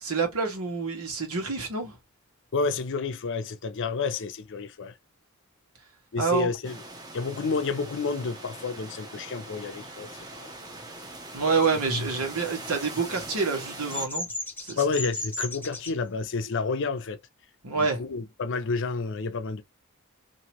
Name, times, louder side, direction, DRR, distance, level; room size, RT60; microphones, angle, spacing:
voice 1, 0.0-2.0 6.2-6.5 11.3-14.3 14.6-14.8 17.6-18.0, right 4 dB, 85° right, 1.5 m, -27 dB
voice 2, 2.5-4.9 6.1-6.8 7.1-10.7 11.9-12.1 14.7-17.2 17.7-19.6, left 4 dB, 60° left, 0.6 m, -30 dB
sound 1, 6.6-14.1, right 2 dB, 20° right, 0.8 m, -42 dB
Bird vocalization bird call bird song, 12.2-15.9, left 2 dB, 10° left, 0.8 m, -35 dB
2.9 x 2.8 x 2.9 m
head